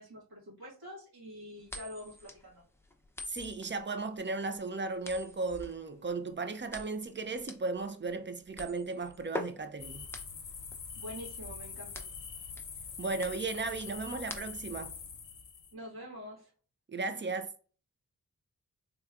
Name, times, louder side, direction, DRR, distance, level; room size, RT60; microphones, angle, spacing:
voice 1, 0.0-2.6 11.0-12.1 15.7-16.5, equal, 80° right, 1.9 m, -46 dB
sound 1, 1.7-14.9, left 2 dB, 5° left, 0.7 m, -46 dB
voice 2, 3.3-10.0 13.0-14.9 16.9-17.5, right 3 dB, 30° right, 0.6 m, -35 dB
sound 2, 9.8-15.7, left 6 dB, 55° left, 0.7 m, -44 dB
3.4 x 3.3 x 2.4 m
cardioid pair, 40°, 37 cm